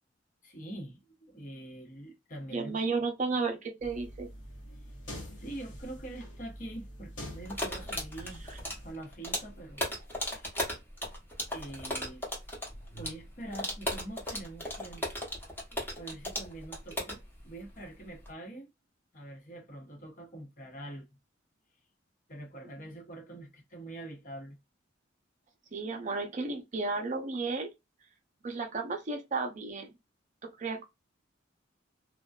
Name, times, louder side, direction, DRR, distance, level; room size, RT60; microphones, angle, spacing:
voice 1, 0.4-2.8 5.4-8.4 8.8-10.6 11.5-12.2 13.0-15.1 16.0-18.7 19.1-21.1 22.3-24.6, right 1 dB, 45° left, 0.9 m, -44 dB
voice 2, 2.5-4.3 8.5-8.6 22.6-22.7 25.7-27.7 28.4-29.9 30.4-30.9, right 3 dB, 40° right, 0.6 m, -33 dB
sound 1, 3.8-8.9, equal, 80° left, 0.9 m, -46 dB
sound 2, 7.5-18.3, equal, 10° left, 0.8 m, -37 dB
2.5 x 2.2 x 2.3 m
head